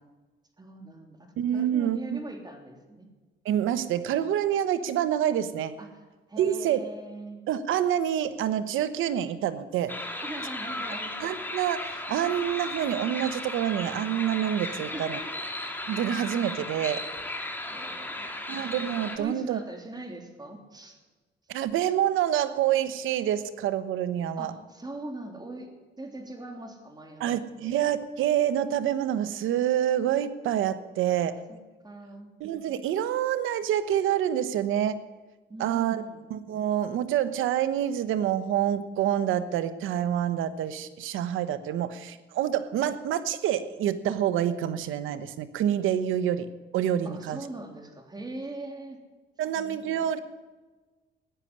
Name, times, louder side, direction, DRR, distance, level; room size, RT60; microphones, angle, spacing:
voice 1, 0.6-3.1 5.8-6.0 6.3-7.4 10.2-11.2 14.9-15.3 17.7-18.4 19.2-21.0 24.4-27.7 31.1-31.6 31.8-32.3 35.5-36.3 47.0-49.0 49.5-50.1, right 2 dB, 20° right, 4 dB, 3.2 m, -41 dB
voice 2, 1.4-2.2 3.4-5.7 6.4-6.8 7.5-10.0 11.2-15.2 15.9-17.0 18.5-19.6 21.5-24.5 27.2-31.4 32.4-35.0 35.6-36.0 36.3-47.4 49.4-50.2, right 10 dB, 85° right, 13 dB, 1.0 m, -27 dB
sound 1, 9.9-19.2, left 1 dB, 10° left, 2.3 m, -35 dB
15.0 x 10.0 x 9.6 m, 1.3 s
cardioid pair, 90°, 20 cm